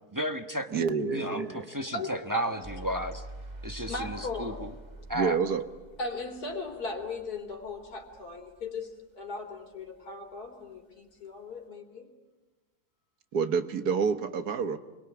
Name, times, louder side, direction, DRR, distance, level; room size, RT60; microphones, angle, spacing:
voice 1, 0.1-3.3 3.6-4.7 5.1-5.4, equal, 15° right, 5 dB, 1.2 m, -33 dB
voice 2, 0.7-1.7 5.1-5.6 13.3-14.8, right 6 dB, 85° right, 9 dB, 1.9 m, -28 dB
voice 3, 1.9-2.4 3.9-4.7 6.0-12.1, left 3 dB, 85° left, 4 dB, 4.2 m, -37 dB
sound 1, 2.6-8.8, right 2 dB, 30° right, 1.6 m, -46 dB
29.0 x 22.5 x 9.1 m, 1.2 s
omnidirectional pair, 1.6 m